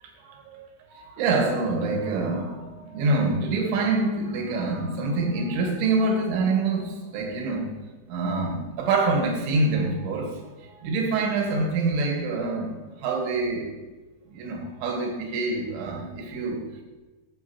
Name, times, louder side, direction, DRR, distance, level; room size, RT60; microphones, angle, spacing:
voice 1, 0.2-0.6 0.9-7.7 8.1-13.7 14.3-16.8, right 3 dB, 85° right, 1 dB, 3.9 m, -26 dB
19.0 x 7.4 x 3.0 m, 1.2 s
omnidirectional pair, 5.2 m